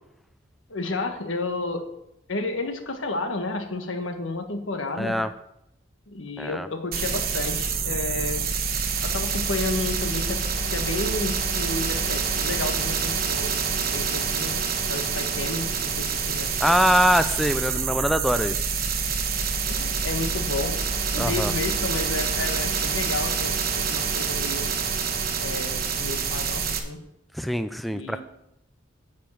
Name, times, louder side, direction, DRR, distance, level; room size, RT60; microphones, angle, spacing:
voice 1, 0.7-1.8 2.3-5.2 6.1-8.4 9.0-10.5 10.7-14.5 14.9-16.8 19.3-19.4 19.7-20.8 21.1-24.7 25.4-27.0 27.9-28.2, left 2 dB, 75° left, 5 dB, 1.5 m, -31 dB
voice 2, 5.0-5.3 6.4-6.7 16.6-18.6 21.2-21.5 27.3-28.2, equal, ahead, 10 dB, 0.4 m, -23 dB
sound 1, 6.9-26.8, right 5 dB, 50° right, 1.2 m, -27 dB
10.0 x 5.2 x 7.7 m, 0.84 s
head